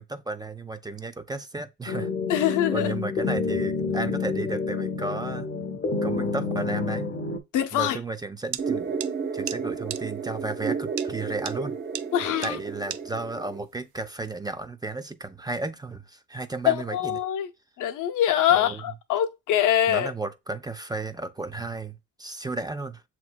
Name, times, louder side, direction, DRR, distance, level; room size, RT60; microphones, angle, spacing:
voice 1, 0.0-2.1 2.5-5.5 6.0-7.2 7.7-8.9 9.3-11.8 12.4-17.2 18.5-18.8 19.9-23.0, right 2 dB, 15° right, 0.4 m, -33 dB
sound 1, 1.9-7.4, left 4 dB, 35° left, 0.7 m, -28 dB
voice 2, 2.3-2.9 7.5-8.0 12.1-12.6 16.7-17.5 17.8-20.1, left 11 dB, 85° left, 0.7 m, -24 dB
sound 2, 8.5-8.6 9.0-9.1 9.5-9.6 9.9-10.0 11.0-11.1 11.5-11.6 12.0-12.1 12.4-12.5 12.9-13.0, right 13 dB, 75° right, 0.5 m, -33 dB
sound 3, 8.6-13.6, right 5 dB, 35° right, 0.8 m, -32 dB
7.0 x 3.0 x 2.2 m
cardioid pair, 90°, 30 cm